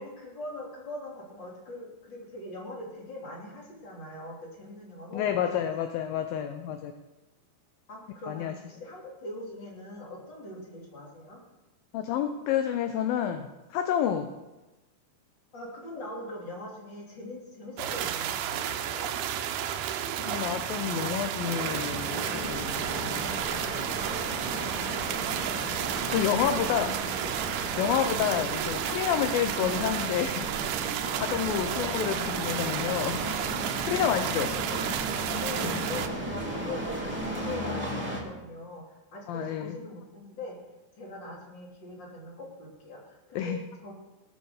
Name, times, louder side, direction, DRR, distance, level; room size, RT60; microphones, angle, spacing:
voice 1, 0.0-5.6 7.9-11.4 15.5-19.1 28.3-28.4 34.4-34.7 35.4-38.8 39.1-40.6 40.9-43.5 43.8-43.9, left 1 dB, 30° left, -2 dB, 3.3 m, -42 dB
voice 2, 5.1-6.9 8.3-8.5 11.9-14.3 20.1-23.2 26.1-27.0 27.5-30.5 31.2-33.2 33.8-34.5 39.3-39.8 43.4-43.6, left 9 dB, 75° left, 7 dB, 2.2 m, -29 dB
sound 1, 17.8-36.1, right 10 dB, 75° right, 2.5 m, -32 dB
sound 2, 21.6-38.2, equal, 5° right, 1.8 m, -36 dB
sound 3, 22.4-37.5, right 4 dB, 55° right, 1.2 m, -46 dB
18.0 x 7.2 x 6.6 m, 1.1 s
omnidirectional pair, 4.8 m